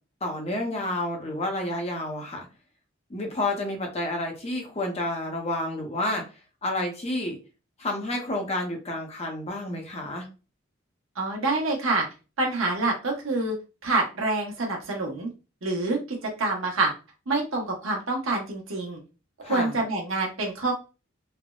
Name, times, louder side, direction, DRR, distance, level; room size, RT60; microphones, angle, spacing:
voice 1, 0.2-2.5 3.1-6.2 6.6-7.4 7.8-10.3 19.4-19.8, left 1 dB, 30° left, 2 dB, 0.7 m, -30 dB
voice 2, 11.2-12.0 12.4-13.6 13.8-15.3 15.6-16.9 17.3-19.0 19.4-20.8, right 2 dB, 85° right, -1 dB, 1.0 m, -26 dB
3.3 x 2.0 x 2.3 m, 0.31 s
head